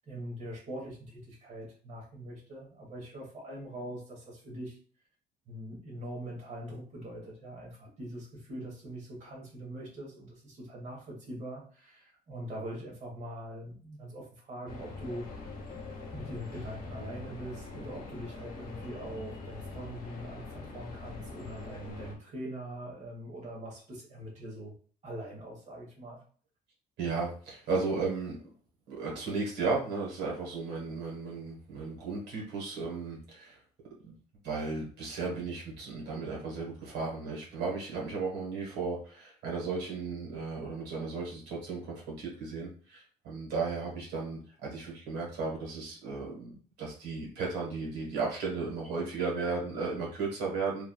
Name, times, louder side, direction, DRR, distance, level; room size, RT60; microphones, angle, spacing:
voice 1, 0.1-4.8 5.5-15.3 16.1-24.7 25.0-26.2, right 1 dB, 45° right, -2 dB, 1.3 m, -42 dB
sound 1, 14.7-22.1, left 3 dB, 60° left, 1.0 m, -43 dB
voice 2, 27.0-28.4 28.9-33.6 34.0-34.1 34.4-50.9, right 4 dB, 85° right, -2 dB, 1.3 m, -35 dB
3.2 x 2.4 x 2.3 m, 0.42 s
cardioid pair, 110°, 17 cm